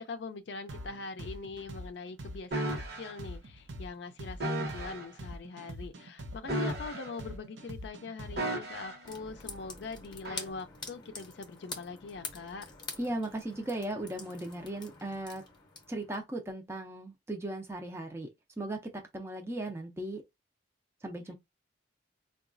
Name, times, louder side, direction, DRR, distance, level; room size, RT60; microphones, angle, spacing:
voice 1, 0.0-2.7 3.0-12.6, left 4 dB, 65° left, 0.4 m, -42 dB
sound 1, 0.7-8.6, equal, 85° right, 0.6 m, -43 dB
sound 2, 2.5-3.1 4.4-5.1 6.4-7.3 8.4-9.1 10.2-10.5, right 1 dB, 60° right, 1.0 m, -34 dB
sound 3, 9.0-16.2, left 4 dB, 25° left, 0.7 m, -46 dB
voice 2, 13.0-15.5 15.9-18.3 18.6-20.2 21.0-21.3, right 1 dB, 15° right, 0.5 m, -37 dB
3.8 x 2.3 x 2.5 m
head